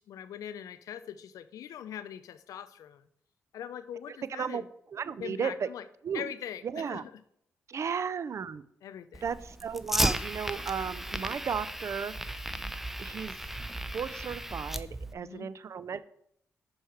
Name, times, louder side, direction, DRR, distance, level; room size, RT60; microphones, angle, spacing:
voice 1, 0.0-3.1 3.5-4.7 5.2-5.8 6.1-7.2 7.9-8.0 8.8-9.2 15.2-15.5, left 10 dB, 75° left, 14 dB, 0.4 m, -42 dB
voice 2, 4.3-4.6 4.9-5.7 6.0-6.3 6.6-7.0 7.7-8.6 9.2-12.1 13.0-13.4 13.9-16.0, right 7 dB, 55° right, 16 dB, 0.4 m, -34 dB
Fire, 9.1-15.1, right 1 dB, 5° right, 0.5 m, -34 dB
6.3 x 4.6 x 4.6 m, 0.70 s
supercardioid pair, 50°, 6 cm